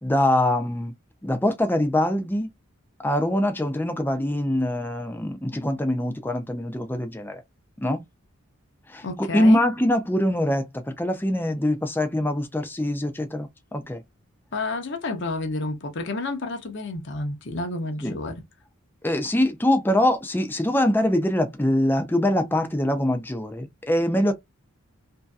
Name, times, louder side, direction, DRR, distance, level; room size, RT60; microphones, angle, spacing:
voice 1, 0.0-0.9 1.2-2.5 3.0-7.4 7.8-8.0 8.9-14.0 18.0-18.2 19.0-24.3, left 1 dB, 10° left, 0.5 m, -23 dB
voice 2, 9.0-9.6 14.5-18.3, left 2 dB, 55° left, 0.8 m, -30 dB
3.0 x 2.7 x 2.3 m
head